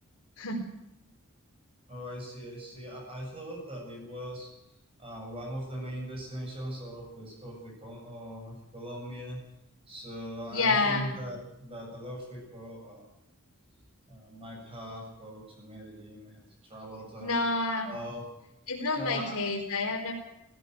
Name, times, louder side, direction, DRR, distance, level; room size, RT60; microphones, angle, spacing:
voice 1, 1.9-9.4 9.9-13.1 14.1-17.3 17.8-18.3 18.9-19.4, equal, 25° right, 0 dB, 7.4 m, -41 dB
voice 2, 10.5-11.1 17.2-17.9 18.7-20.1, left 3 dB, 85° left, 1 dB, 4.2 m, -28 dB
18.0 x 16.0 x 9.3 m, 0.86 s
head